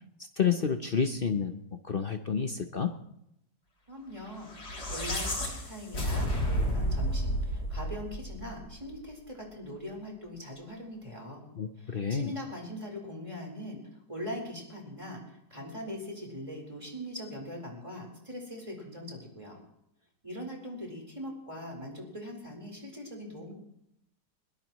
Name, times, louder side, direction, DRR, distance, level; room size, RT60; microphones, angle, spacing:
voice 1, 0.4-1.6 1.8-2.9 11.6-12.3, left 6 dB, 45° left, 6 dB, 0.8 m, -29 dB
voice 2, 3.9-11.4 11.8-13.8 14.1-19.6 20.2-23.5, left 1 dB, 15° right, 0 dB, 4.3 m, -41 dB
sound 1, 4.4-8.8, equal, 70° left, 3.7 m, -31 dB
21.0 x 21.0 x 3.1 m, 0.79 s
omnidirectional pair, 1.8 m